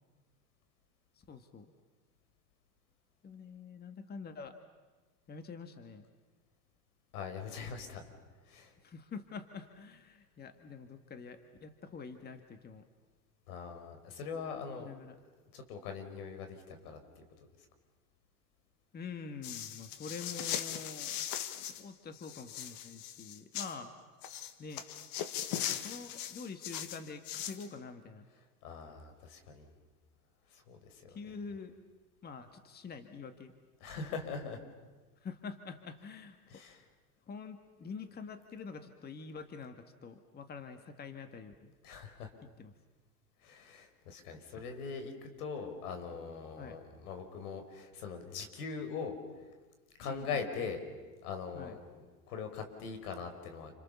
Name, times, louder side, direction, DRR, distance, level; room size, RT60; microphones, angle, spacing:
voice 1, 1.2-1.7 3.2-4.6 5.3-6.1 8.8-12.9 14.8-15.2 18.9-21.2 21.6-23.9 24.6-24.8 25.6-28.3 31.1-31.7 32.2-33.5 35.2-36.4 37.3-41.7 42.6-42.7 46.6-46.8 50.0-50.4 51.5-51.8, left 5 dB, 20° left, 8 dB, 1.7 m, -46 dB
voice 2, 7.1-8.0 8.5-8.7 13.5-14.9 15.5-17.5 28.6-29.7 30.5-31.2 33.8-34.6 36.5-36.8 41.8-42.3 43.4-49.2 50.0-50.8 51.2-53.7, left 5 dB, 70° left, 6 dB, 5.3 m, -42 dB
sound 1, 19.4-21.8 22.1-23.7 24.2-27.7, left 10 dB, 45° left, 1.9 m, -39 dB
29.0 x 27.5 x 7.0 m, 1.3 s
hypercardioid pair, 110°, 46 cm